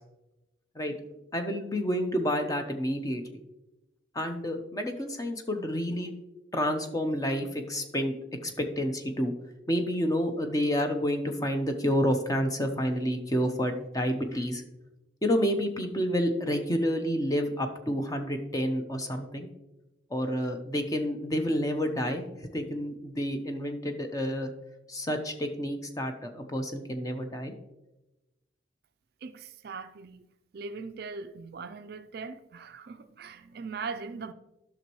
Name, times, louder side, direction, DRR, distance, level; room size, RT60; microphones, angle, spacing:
voice 1, 1.3-3.4 4.1-6.1 6.5-8.1 8.4-9.3 9.7-14.6 15.2-19.5 20.1-24.5 24.9-27.5, equal, 20° left, 0.6 m, -29 dB
voice 2, 29.2-34.3, right 4 dB, 50° right, 0.4 m, -40 dB
11.0 x 6.2 x 3.0 m
head